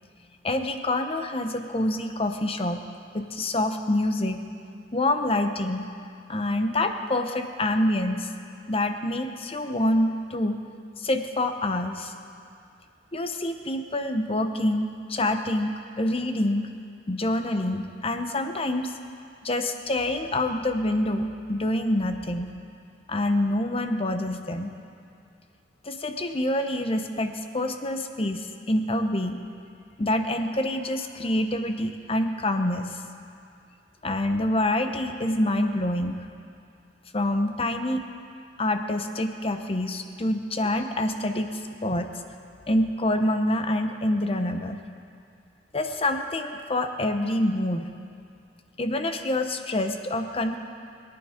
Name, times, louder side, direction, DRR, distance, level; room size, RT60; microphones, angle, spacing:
voice 1, 0.4-2.8 3.1-4.4 4.9-5.9 6.3-8.3 8.7-10.6 11.0-12.1 13.1-16.7 17.1-18.9 19.4-22.5 23.1-24.7 25.8-29.4 30.0-33.0 34.0-36.3 37.1-38.1 38.6-42.1 42.7-44.8 45.7-47.9 48.8-50.6, left 1 dB, 35° left, 7 dB, 0.8 m, -26 dB
22.0 x 9.9 x 5.1 m, 2.4 s
head